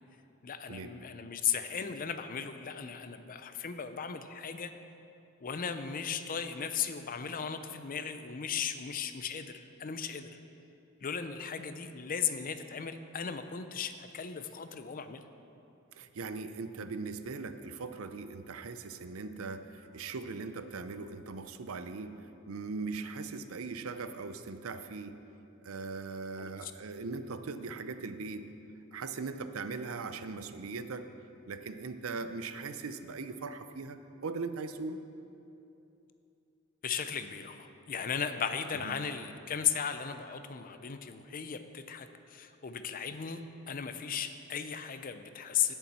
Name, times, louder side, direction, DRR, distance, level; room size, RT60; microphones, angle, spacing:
voice 1, 0.4-4.7 5.4-10.3 11.0-15.2 26.4-26.7 36.8-43.4 43.7-45.7, left 7 dB, 40° left, 9 dB, 0.5 m, -36 dB
voice 2, 15.9-25.2 25.6-28.5 28.9-31.1 31.5-35.0 38.8-38.9, right 4 dB, 75° right, 10 dB, 0.6 m, -40 dB
16.5 x 7.0 x 4.2 m, 2.8 s
head